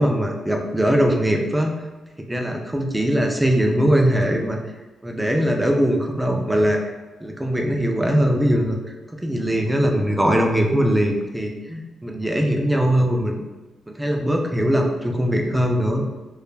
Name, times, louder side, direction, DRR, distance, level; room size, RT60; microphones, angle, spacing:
voice 1, 0.0-1.7 2.2-4.6 5.0-6.9 7.2-8.8 9.1-13.4 13.9-16.0, equal, 10° right, 2 dB, 0.4 m, -21 dB
2.3 x 2.1 x 3.2 m, 1.2 s
cardioid pair, 90°, 0 cm